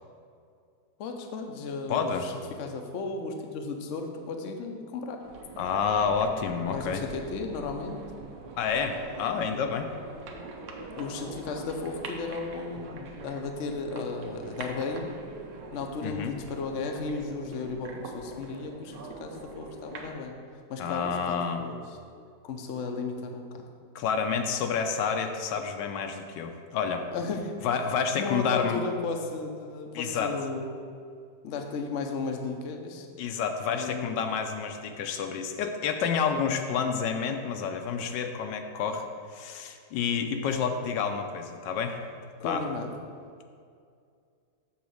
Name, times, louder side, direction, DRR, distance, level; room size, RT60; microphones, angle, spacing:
voice 1, 1.0-2.3 2.6-5.2 6.7-8.0 11.0-15.1 15.7-20.3 20.7-21.8 22.4-23.6 27.1-27.5 28.2-30.7 31.4-33.1 33.7-34.1 42.4-42.9, left 4 dB, 60° left, 4 dB, 0.7 m, -34 dB
voice 2, 1.9-2.2 5.6-7.0 8.6-9.9 16.0-16.4 20.8-21.6 23.9-27.0 27.6-28.8 29.9-30.3 33.2-39.0 39.3-42.0 42.4-42.6, left 6 dB, 80° left, 6 dB, 1.2 m, -29 dB
sound 1, 5.2-20.1, right 3 dB, 70° right, 1.4 m, -43 dB
7.1 x 4.0 x 6.3 m, 2.3 s
omnidirectional pair, 2.0 m